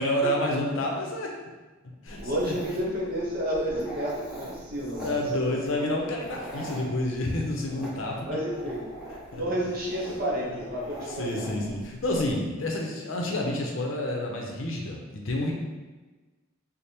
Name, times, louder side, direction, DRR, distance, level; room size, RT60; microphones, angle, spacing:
voice 1, 0.0-1.3 2.0-2.2 2.7-2.9 5.0-8.3 9.3-9.4 10.7-15.5, left 1 dB, 65° left, 0 dB, 0.6 m, -29 dB
Dog, 2.1-12.3, right 1 dB, 5° right, 0.7 m, -43 dB
voice 2, 2.2-5.1 5.4-5.5 8.2-8.9 9.3-11.4, equal, 45° right, -5 dB, 1.0 m, -30 dB
3.3 x 2.1 x 4.2 m, 1.2 s
head